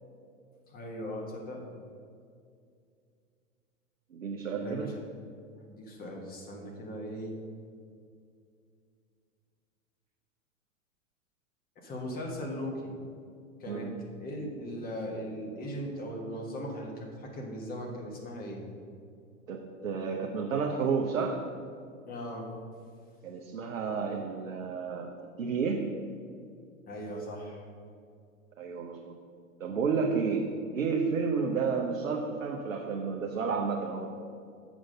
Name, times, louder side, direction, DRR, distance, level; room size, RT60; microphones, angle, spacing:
voice 1, 0.7-1.6 4.6-5.1 5.6-7.4 11.8-12.9 13.6-13.9 14.2-18.6 22.1-22.5 26.9-27.6, equal, 20° left, 0 dB, 1.4 m, -38 dB
voice 2, 4.1-4.9 13.7-14.0 19.5-21.4 23.2-25.1 25.4-25.9 28.6-29.2 29.6-34.1, right 5 dB, 70° right, 1 dB, 0.9 m, -31 dB
7.1 x 6.3 x 5.2 m, 2.3 s
figure-of-eight pair, 95°, 40 cm